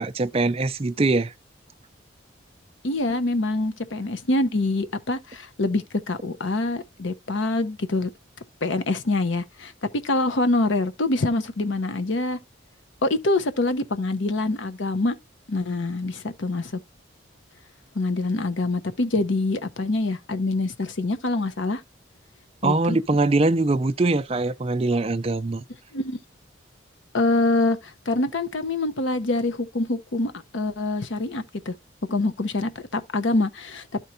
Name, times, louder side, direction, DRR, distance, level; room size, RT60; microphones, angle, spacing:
voice 1, 0.0-1.3 22.6-25.6, right 2 dB, 30° right, 0.4 m, -22 dB
voice 2, 2.8-8.1 8.6-9.7 10.0-12.4 13.0-15.1 15.5-16.8 17.9-21.8 22.6-23.0 25.9-26.2 27.1-31.7 32.1-33.8, left 2 dB, 70° left, 0.8 m, -25 dB
12.5 x 4.5 x 2.7 m
head